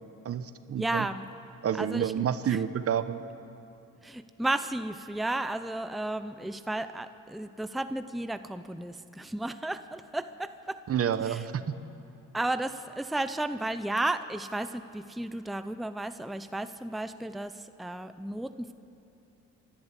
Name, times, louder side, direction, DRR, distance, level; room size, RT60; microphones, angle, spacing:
voice 1, 0.2-1.1 1.6-3.2 10.9-11.6, right 9 dB, 50° right, 12 dB, 1.0 m, -29 dB
voice 2, 0.8-1.2 1.8-2.1 2.4-2.6 4.0-10.8 11.3-11.4 12.3-18.7, right 2 dB, ahead, 10 dB, 0.6 m, -33 dB
27.5 x 11.5 x 8.3 m, 2.7 s
cardioid pair, 90°, 30 cm